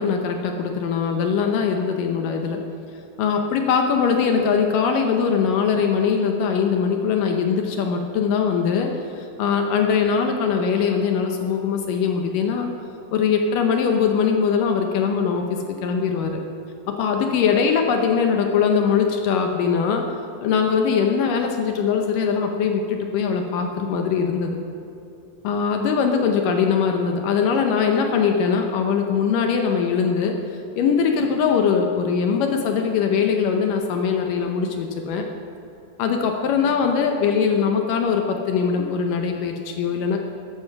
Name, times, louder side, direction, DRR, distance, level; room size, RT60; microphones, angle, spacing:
voice 1, 0.0-2.6 3.2-8.9 9.2-12.7 13.1-16.4 16.9-20.0 20.4-24.6 25.4-30.3 30.8-35.2 36.0-40.2, left 6 dB, 75° left, 3 dB, 2.1 m, -21 dB
14.0 x 10.5 x 5.8 m, 2.9 s
omnidirectional pair, 4.7 m